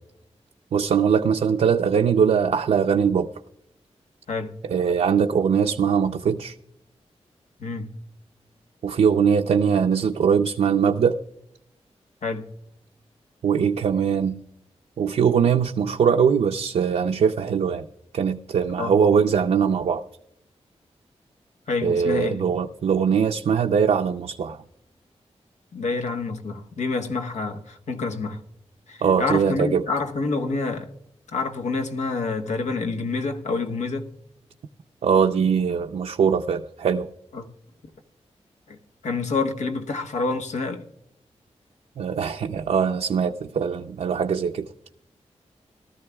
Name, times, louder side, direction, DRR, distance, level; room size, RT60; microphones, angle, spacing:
voice 1, 0.7-3.3 4.6-6.5 8.8-11.2 13.4-14.4 15.0-17.9 18.1-20.0 21.8-24.6 29.0-29.8 35.0-37.1 42.0-44.7, right 7 dB, 75° right, 0.5 m, -21 dB
voice 2, 21.7-22.4 25.7-28.4 28.9-30.9 31.3-34.1 37.3-37.5 38.7-38.8 39.0-40.8, left 3 dB, 90° left, 1.2 m, -27 dB
18.5 x 13.0 x 2.3 m
wide cardioid pair, 145°, 12 cm